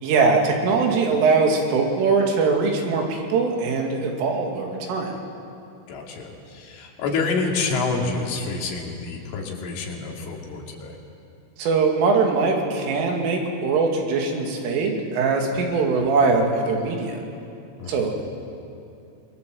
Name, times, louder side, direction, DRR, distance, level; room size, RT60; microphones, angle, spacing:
voice 1, 0.0-5.2 11.6-17.2 17.9-18.2, right 4 dB, 80° right, 1 dB, 4.9 m, -21 dB
voice 2, 5.9-11.0 15.6-15.8 17.8-18.1, left 4 dB, 80° left, 0 dB, 5.1 m, -28 dB
25.5 x 22.5 x 7.7 m, 2.7 s
omnidirectional pair, 5.7 m